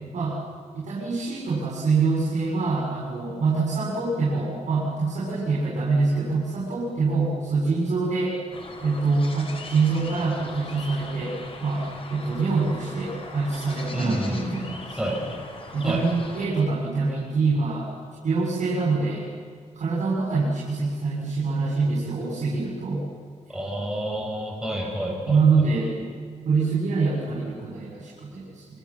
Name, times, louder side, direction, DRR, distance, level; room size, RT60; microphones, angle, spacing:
voice 1, 0.8-8.4 8.8-15.2 15.7-17.9 18.2-19.3 19.7-23.0 25.3-26.1 26.4-28.8, right 4 dB, 75° right, -7 dB, 7.3 m, -25 dB
sound 1, 8.5-16.5, left 3 dB, 50° left, 4.1 m, -40 dB
voice 2, 13.9-14.6 15.0-15.2 15.8-16.0 23.5-25.4, right 1 dB, 5° right, -3 dB, 6.1 m, -28 dB
27.5 x 26.0 x 7.5 m, 2.1 s
wide cardioid pair, 120°, 12 cm